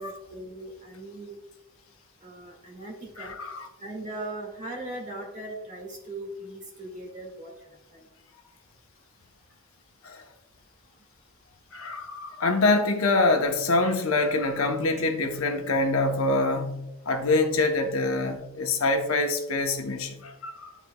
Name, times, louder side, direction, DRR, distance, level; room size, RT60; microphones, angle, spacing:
voice 1, 0.0-1.4 2.2-3.3 3.8-7.5 7.9-8.0, right 1 dB, 35° right, 1.7 m, -39 dB
voice 2, 3.2-3.7 10.0-10.2 11.7-20.8, left 2 dB, 65° left, 0.8 m, -25 dB
11.0 x 4.1 x 2.2 m
head